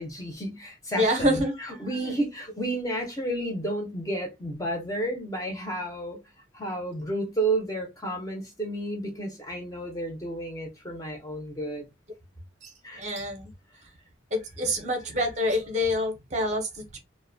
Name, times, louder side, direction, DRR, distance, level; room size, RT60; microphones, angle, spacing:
voice 1, 0.0-1.4 1.8-6.2 6.5-11.9 12.8-13.0, right 1 dB, 15° left, 0.5 m, -31 dB
voice 2, 1.0-2.2 12.6-13.5 14.3-17.0, left 1 dB, 35° right, 0.6 m, -27 dB
2.5 x 2.1 x 2.6 m
head